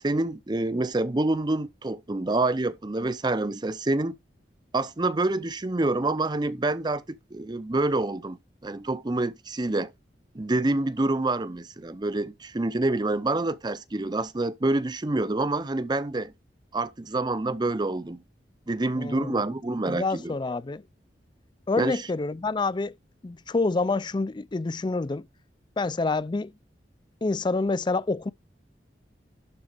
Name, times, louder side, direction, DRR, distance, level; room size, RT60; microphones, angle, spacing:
voice 1, 0.0-4.1 4.7-7.0 7.3-8.4 8.6-9.9 10.3-16.3 16.7-18.2 18.7-20.3 21.8-22.0, right 2 dB, 25° right, 0.6 m, -27 dB
voice 2, 19.0-19.4 19.9-20.8 21.7-23.0 23.2-25.3 25.8-26.5 27.2-28.3, left 3 dB, 25° left, 0.4 m, -27 dB
11.5 x 4.0 x 4.9 m
head